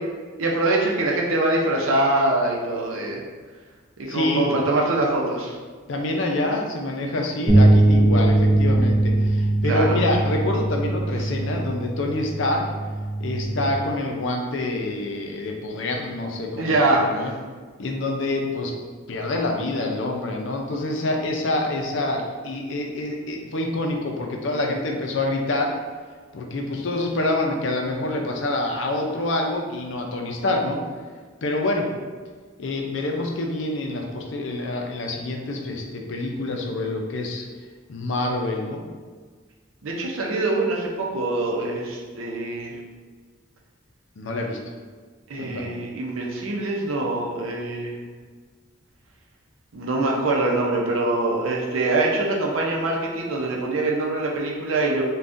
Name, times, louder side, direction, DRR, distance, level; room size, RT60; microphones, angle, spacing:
voice 1, 0.4-3.2 4.0-5.6 9.6-10.0 16.6-17.3 39.8-42.8 45.3-48.0 49.7-55.0, right 2 dB, 85° right, -1 dB, 0.6 m, -24 dB
voice 2, 4.1-4.6 5.9-12.7 13.2-17.3 17.8-18.7 19.1-25.7 26.3-30.8 31.4-31.9 32.6-37.5 37.9-38.8 44.2-44.6 45.4-45.7, left 2 dB, 70° left, 1 dB, 0.5 m, -26 dB
sound 1, 7.5-13.7, right 1 dB, 25° right, 0.6 m, -20 dB
3.5 x 2.3 x 2.6 m, 1.5 s
head